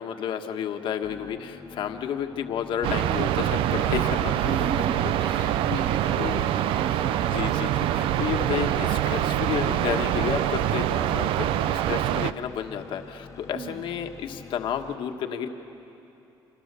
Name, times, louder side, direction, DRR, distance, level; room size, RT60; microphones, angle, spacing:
voice 1, 0.0-4.7 5.0-5.8 6.2-6.4 7.3-15.5, left 8 dB, 70° left, 5 dB, 1.5 m, -31 dB
sound 1, 1.0-15.0, left 6 dB, 35° left, 1.1 m, -46 dB
sound 2, 2.8-12.3, right 12 dB, 85° right, 0.6 m, -25 dB
voice 2, 4.4-7.1 13.5-13.9, right 6 dB, 65° right, 4 dB, 2.2 m, -36 dB
29.5 x 25.5 x 6.9 m, 2.9 s
cardioid pair, 120°, 9 cm